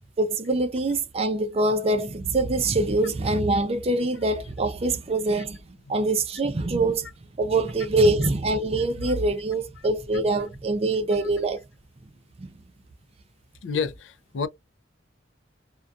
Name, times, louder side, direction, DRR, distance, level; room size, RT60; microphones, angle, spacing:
voice 1, 0.2-5.6 5.9-7.1 7.4-11.6 12.4-12.5, right 2 dB, 35° right, 0.4 m, -24 dB
voice 2, 13.6-14.5, left 5 dB, 75° left, 0.4 m, -30 dB
2.6 x 2.2 x 2.3 m
head